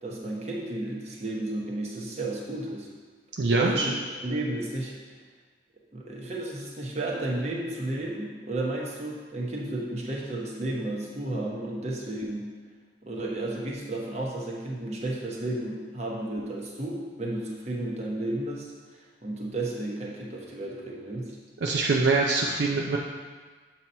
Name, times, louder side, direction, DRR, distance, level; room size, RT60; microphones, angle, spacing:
voice 1, 0.0-2.9 3.5-3.9 4.2-4.9 5.9-12.5 13.0-21.4, right 1 dB, 35° right, -3 dB, 0.9 m, -33 dB
voice 2, 3.4-3.9 21.6-23.0, right 3 dB, 65° right, -1 dB, 0.4 m, -24 dB
7.4 x 2.9 x 5.4 m, 1.5 s
head